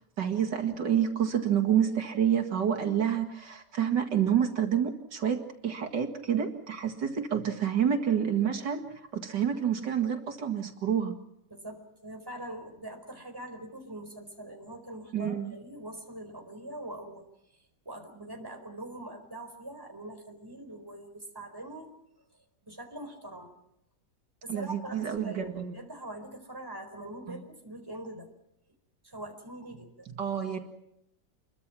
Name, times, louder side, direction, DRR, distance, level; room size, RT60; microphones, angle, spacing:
voice 1, 0.2-11.1 15.1-15.5 24.5-25.7 27.3-27.4 30.2-30.6, right 8 dB, 80° right, 5 dB, 2.6 m, -28 dB
voice 2, 11.5-17.3 17.8-21.9 22.6-23.5 24.4-28.3 29.0-30.1, right 1 dB, 10° right, 4 dB, 4.3 m, -43 dB
27.5 x 23.0 x 6.0 m, 0.78 s
omnidirectional pair, 1.8 m